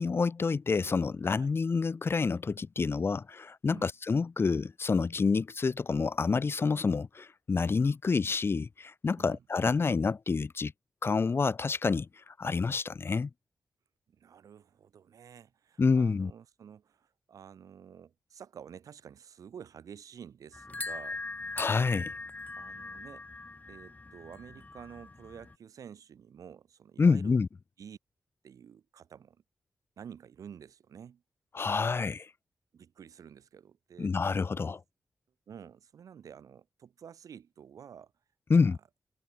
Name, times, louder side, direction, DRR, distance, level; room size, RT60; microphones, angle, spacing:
voice 1, 0.0-10.7 11.0-13.3 15.8-16.3 21.6-22.1 27.0-27.5 31.5-32.3 34.0-34.8 38.5-38.8, left 4 dB, 45° left, 1.0 m, -28 dB
voice 2, 14.1-21.2 22.6-23.3 23.7-27.4 27.8-28.0 28.4-29.4 30.0-31.2 32.7-34.2 35.5-38.1 38.5-38.7, right 8 dB, 85° right, 7.2 m, -50 dB
sound 1, 20.5-25.5, left 3 dB, 30° left, 2.4 m, -41 dB
cardioid pair, 90°, 6 cm